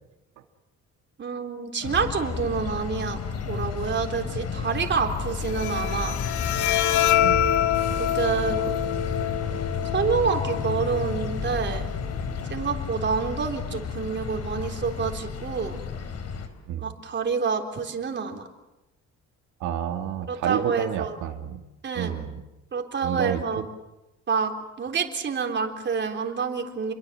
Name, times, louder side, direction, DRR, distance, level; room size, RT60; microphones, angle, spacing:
voice 1, 1.2-3.2 3.5-6.2 8.0-8.6 9.8-11.9 12.5-15.8 16.8-18.5 20.3-21.2 21.8-22.2 22.7-23.6 24.3-26.9, right 5 dB, 40° right, 4 dB, 3.8 m, -28 dB
sound 1, 1.8-16.5, left 5 dB, 60° left, 4.3 m, -32 dB
Bowed string instrument, 5.4-12.4, left 11 dB, 85° left, 1.9 m, -26 dB
voice 2, 19.6-21.6 22.0-22.4 23.0-23.4, right 10 dB, 85° right, 3 dB, 2.4 m, -30 dB
30.0 x 23.5 x 7.7 m, 0.98 s
cardioid pair, 125°, 29 cm